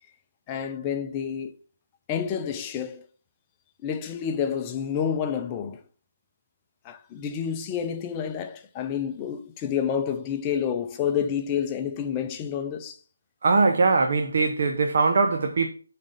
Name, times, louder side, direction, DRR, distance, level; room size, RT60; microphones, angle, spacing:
voice 1, 0.5-1.5 2.1-3.1 3.8-5.8 6.8-13.0, left 8 dB, 20° left, 0.7 m, -29 dB
voice 2, 13.4-15.7, right 4 dB, 50° right, 0.9 m, -21 dB
6.2 x 4.2 x 5.2 m
figure-of-eight pair, 150°, 0 cm